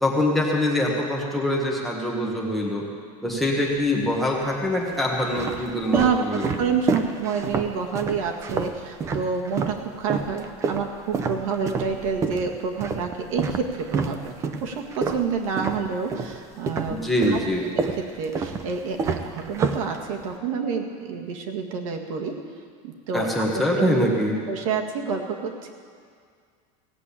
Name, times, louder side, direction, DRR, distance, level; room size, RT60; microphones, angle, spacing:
voice 1, 0.0-2.9 3.2-6.8 16.9-17.7 23.1-24.4, left 1 dB, ahead, -1 dB, 1.2 m, -24 dB
sound 1, 3.3-4.0 4.7-9.8 10.1-16.4 16.7-20.4, right 5 dB, 15° right, 0.5 m, -28 dB
voice 2, 5.9-14.3 14.6-17.0 17.3-17.4 17.9-22.4 22.8-23.3 23.5-24.1 24.5-25.7, right 6 dB, 80° right, 2 dB, 1.9 m, -28 dB
17.0 x 7.4 x 8.4 m, 2.1 s
supercardioid pair, 180°, 17 cm